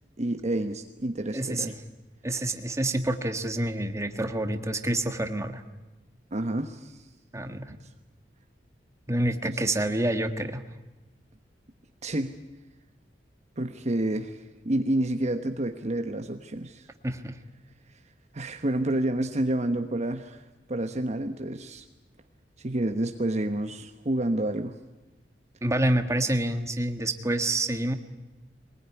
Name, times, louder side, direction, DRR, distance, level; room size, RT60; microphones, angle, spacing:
voice 1, 0.2-1.7 6.3-7.0 9.4-9.6 12.0-12.3 13.6-16.9 18.3-21.8 22.6-24.8, right 1 dB, 40° right, 6 dB, 1.1 m, -29 dB
voice 2, 1.3-1.7 2.2-5.6 7.3-7.7 9.1-10.6 17.0-17.3 25.6-28.0, right 1 dB, 15° right, 7 dB, 1.5 m, -27 dB
22.5 x 20.5 x 9.8 m, 1.1 s
head